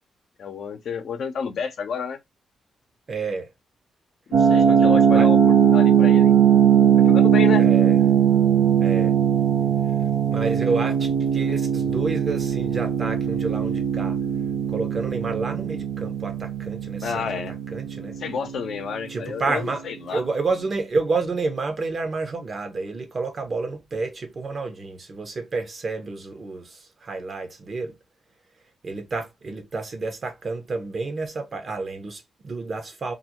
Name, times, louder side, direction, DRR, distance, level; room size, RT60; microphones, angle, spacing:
voice 1, 0.4-2.2 4.4-6.3 7.0-7.6 17.0-17.6 18.2-20.2, left 6 dB, 70° left, 0.6 m, -30 dB
voice 2, 3.1-3.5 5.1-5.3 7.6-8.0 8.8-9.1 10.3-14.2 14.7-18.1 19.1-19.8 20.1-28.0 28.8-33.1, right 3 dB, 50° right, 0.8 m, -29 dB
sound 1, 4.3-19.1, right 8 dB, 90° right, 0.6 m, -19 dB
2.5 x 2.1 x 2.8 m
cardioid pair, 65°, 0 cm